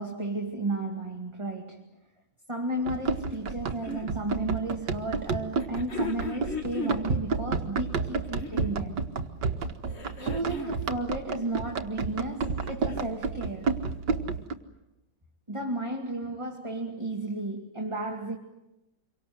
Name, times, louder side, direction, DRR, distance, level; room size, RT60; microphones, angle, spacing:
voice 1, 0.0-1.8 2.5-9.1 10.2-13.8 15.5-18.4, right 2 dB, 15° right, 2.2 m, -33 dB
Run, 2.8-14.5, right 4 dB, 70° right, 2.1 m, -31 dB
sound 1, 3.3-4.1 5.6-7.1 8.1-8.8 9.9-10.8 12.3-13.2 14.3-14.4, left 3 dB, 35° left, 2.1 m, -37 dB
28.0 x 24.0 x 7.9 m
omnidirectional pair, 1.9 m